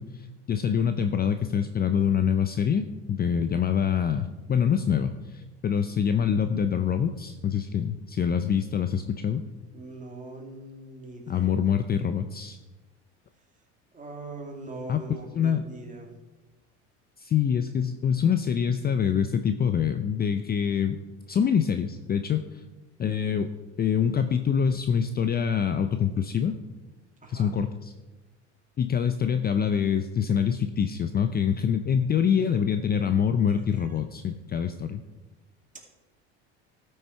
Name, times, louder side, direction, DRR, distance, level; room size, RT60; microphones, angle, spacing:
voice 1, 0.0-9.4 11.3-12.6 14.9-15.0 15.4-15.6 17.2-21.0 21.3-22.6 23.0-23.5 23.8-26.5 27.3-27.9 28.8-35.0, left 7 dB, 30° left, 9 dB, 0.5 m, -25 dB
voice 2, 9.7-11.7 13.9-16.1 27.2-27.6 33.5-34.0 35.7-35.8, right 2 dB, 20° right, 0 dB, 2.5 m, -42 dB
12.5 x 6.5 x 4.4 m, 1.2 s
hypercardioid pair, 85°, 35 cm